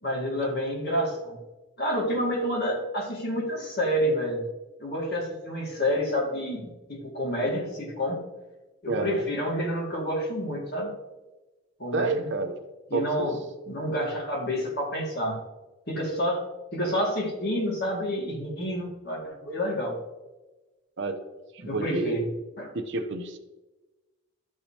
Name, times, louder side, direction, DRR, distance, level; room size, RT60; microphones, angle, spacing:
voice 1, 0.0-1.4 1.8-4.4 4.8-8.2 8.8-10.9 11.8-12.3 12.9-13.4 13.7-15.4 15.9-16.4 16.7-20.0 21.6-22.3 22.6-22.7, equal, 45° left, -2 dB, 2.2 m, -29 dB
voice 2, 8.9-9.2 11.9-12.6 12.9-13.1 21.0-21.2 21.6-22.1 22.7-23.4, right 3 dB, 55° right, 6 dB, 0.7 m, -28 dB
13.0 x 4.8 x 2.9 m, 1.1 s
head